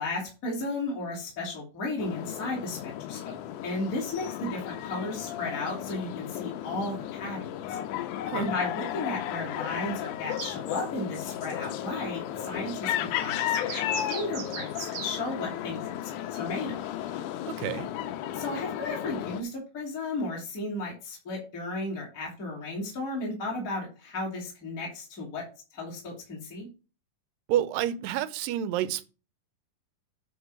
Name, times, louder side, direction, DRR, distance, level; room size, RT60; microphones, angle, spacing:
voice 1, 0.0-3.4 3.6-7.8 8.3-14.7 15.0-16.8 18.3-25.4 25.7-26.7, left 2 dB, 25° left, 3.1 m, -34 dB
sound 1, 2.0-19.4, left 11 dB, 75° left, 2.0 m, -34 dB
sound 2, 10.3-10.6 13.5-15.1 16.3-16.4 17.1-17.2, right 7 dB, 55° right, 1.5 m, -39 dB
voice 2, 17.5-17.9 27.5-29.1, right 11 dB, 85° right, 2.3 m, -29 dB
9.5 x 4.0 x 6.2 m
omnidirectional pair, 4.0 m